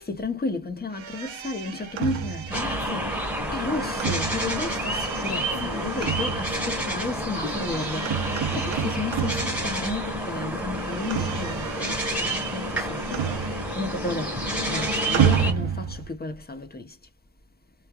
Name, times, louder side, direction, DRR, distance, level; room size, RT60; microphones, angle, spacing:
voice 1, 0.0-17.0, left 3 dB, 20° left, 0.8 m, -33 dB
sound 1, 0.9-10.2 10.5-14.0 14.2-16.1, right 9 dB, 90° right, 0.7 m, -31 dB
sound 2, 2.5-15.5, equal, 5° right, 1.1 m, -29 dB
3.2 x 2.2 x 2.3 m
wide cardioid pair, 105°, 45 cm